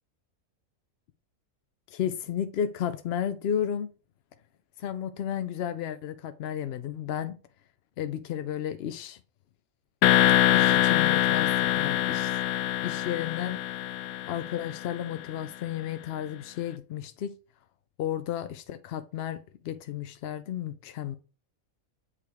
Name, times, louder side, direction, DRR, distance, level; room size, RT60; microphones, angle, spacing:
voice 1, 1.9-3.9 4.8-7.4 8.0-9.2 10.5-12.4 12.8-13.6 14.3-17.3 18.0-21.2, left 9 dB, 65° left, 0.6 m, -33 dB
sound 1, 10.0-14.9, left 12 dB, 85° left, 1.0 m, -24 dB
8.3 x 4.9 x 3.5 m
omnidirectional pair, 1.4 m